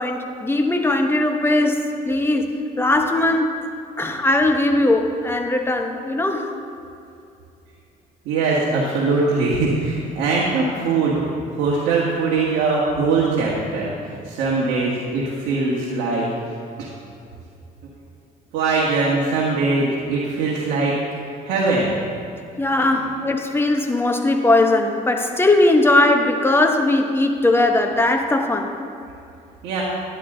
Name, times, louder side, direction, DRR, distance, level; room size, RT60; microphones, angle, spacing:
voice 1, 0.0-3.6 4.0-6.5 22.6-28.7, left 2 dB, 15° left, 4 dB, 0.9 m, -19 dB
voice 2, 8.2-11.2 11.6-13.9 14.2-16.3 16.8-16.9 18.5-20.9 21.4-21.9 22.8-23.0 29.6-29.8, right 3 dB, 90° right, -4 dB, 1.6 m, -21 dB
11.0 x 10.5 x 3.8 m, 2.6 s
cardioid pair, 110°, 17 cm